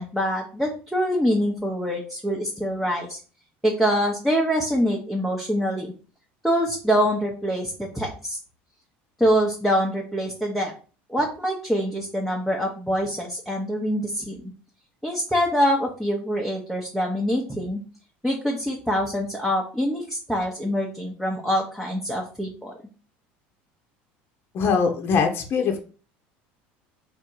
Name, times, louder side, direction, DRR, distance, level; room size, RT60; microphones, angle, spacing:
voice 1, 0.0-3.2 3.6-5.9 6.4-8.4 9.2-10.7 11.1-14.4 15.0-17.8 18.2-22.7, equal, ahead, -2 dB, 0.8 m, -25 dB
voice 2, 24.5-25.8, left 5 dB, 45° left, 4 dB, 0.8 m, -22 dB
3.6 x 2.6 x 4.5 m, 0.38 s
supercardioid pair, 105°, 5 cm